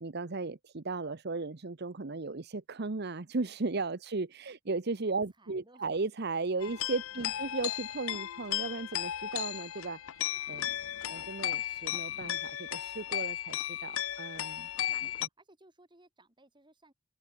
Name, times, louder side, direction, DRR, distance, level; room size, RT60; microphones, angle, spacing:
voice 1, 0.0-10.7 11.0-15.3, right 3 dB, 55° right, 0.9 m, -36 dB
voice 2, 5.3-5.9 7.1-7.6 10.8-11.2 14.9-16.9, right 1 dB, 25° right, 5.5 m, -63 dB
sound 1, 6.6-15.3, left 12 dB, 85° left, 0.5 m, -35 dB
open air
head